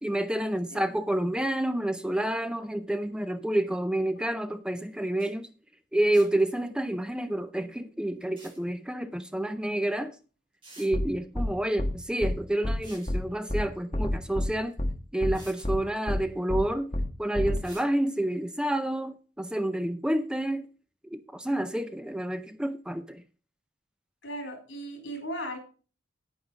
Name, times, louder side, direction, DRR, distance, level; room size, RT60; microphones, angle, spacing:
voice 1, 0.0-5.5 5.9-10.2 10.8-14.8 15.1-16.9 17.2-20.7 21.1-23.2, right 1 dB, 5° right, 0.4 m, -29 dB
sound 1, 4.9-5.0 5.2-5.3 6.1-6.5 8.2-8.6 9.9-10.0 10.6-10.9 12.7-13.2 14.7-14.8 15.3-15.7 17.6-17.9, right 2 dB, 25° right, 5.5 m, -50 dB
sound 2, 10.9-11.1 11.3-11.5 11.8-11.9 12.2-12.3 12.6-12.8 13.1-13.2 13.5-13.6 13.9-14.5 14.8-14.9 15.2-15.3 15.6-15.8 16.1-16.2 16.5-16.6 16.9-17.1 17.3-17.6, left 1 dB, 30° left, 1.2 m, -27 dB
voice 2, 24.2-25.6, equal, 75° left, 4.0 m, -37 dB
9.5 x 9.2 x 3.9 m
head